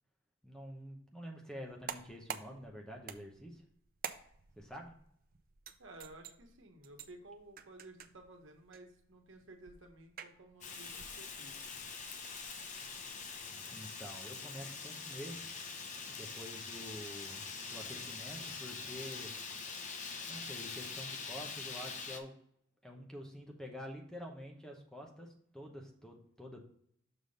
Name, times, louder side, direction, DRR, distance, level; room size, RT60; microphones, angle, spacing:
voice 1, 0.4-3.6 4.6-4.9 13.7-15.5 16.1-19.3 20.3-22.3 22.8-26.6, equal, 5° left, 1 dB, 0.8 m, -48 dB
sound 1, 1.7-13.4, right 8 dB, 45° right, 0.5 m, -51 dB
voice 2, 5.8-11.8, right 2 dB, 65° right, 2 dB, 1.2 m, -55 dB
Fire, 10.6-22.2, left 5 dB, 35° left, 0.7 m, -44 dB
6.5 x 3.7 x 5.2 m, 0.67 s
head